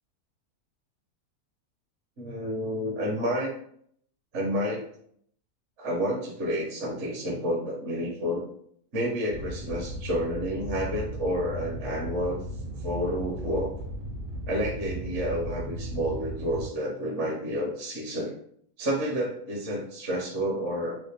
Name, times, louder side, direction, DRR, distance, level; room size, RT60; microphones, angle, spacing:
voice 1, 2.2-3.5 4.3-4.8 5.8-8.5 8.9-12.4 12.8-13.7 14.5-18.3 18.8-21.0, equal, 55° right, -3 dB, 1.0 m, -30 dB
sound 1, 9.3-16.7, right 1 dB, 75° right, 1.3 m, -36 dB
3.2 x 2.5 x 3.2 m, 0.65 s
omnidirectional pair, 1.6 m